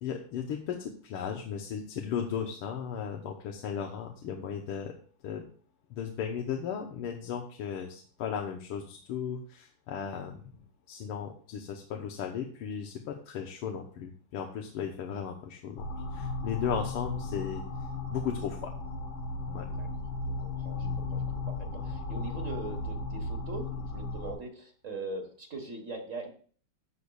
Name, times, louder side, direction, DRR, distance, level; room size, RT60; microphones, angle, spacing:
voice 1, 0.0-4.9 5.2-5.4 5.9-10.5 10.9-17.6 18.1-18.7 19.5-19.7 20.8-21.1, left 8 dB, 85° left, 2 dB, 1.8 m, -36 dB
sound 1, 15.8-24.3, left 3 dB, 60° left, 2.2 m, -35 dB
voice 2, 20.4-26.3, right 3 dB, 40° right, 4 dB, 1.5 m, -41 dB
13.5 x 8.0 x 2.3 m, 0.44 s
omnidirectional pair, 2.4 m